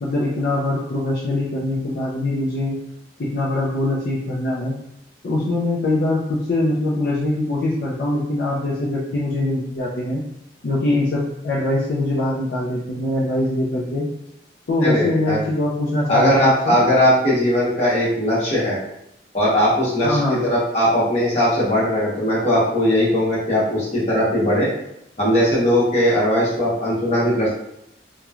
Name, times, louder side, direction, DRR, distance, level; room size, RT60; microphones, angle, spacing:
voice 1, 0.0-2.8 3.2-4.7 5.2-10.2 10.6-14.1 14.7-16.8 20.0-20.4, left 2 dB, 60° left, -5 dB, 0.4 m, -22 dB
voice 2, 14.8-15.4 16.1-18.8 19.3-24.7 25.2-27.5, equal, 35° left, -7 dB, 1.0 m, -19 dB
3.0 x 2.1 x 2.3 m, 0.79 s
head